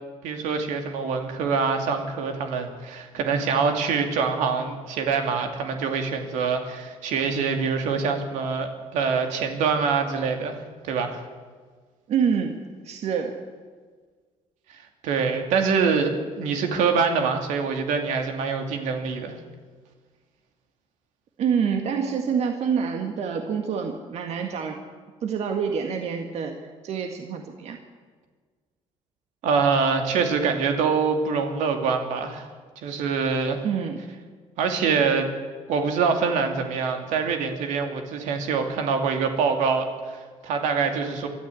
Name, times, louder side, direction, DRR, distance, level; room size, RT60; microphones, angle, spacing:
voice 1, 0.2-10.6 10.8-11.2 15.0-19.3 29.4-32.5 32.8-33.6 34.6-35.3 35.7-41.3, right 5 dB, 85° right, 5 dB, 2.7 m, -25 dB
voice 2, 12.1-13.4 21.4-24.8 25.2-27.8 33.6-34.0, right 6 dB, 65° right, 4 dB, 1.9 m, -27 dB
24.0 x 13.5 x 8.5 m, 1.5 s
cardioid pair, 110°, 12 cm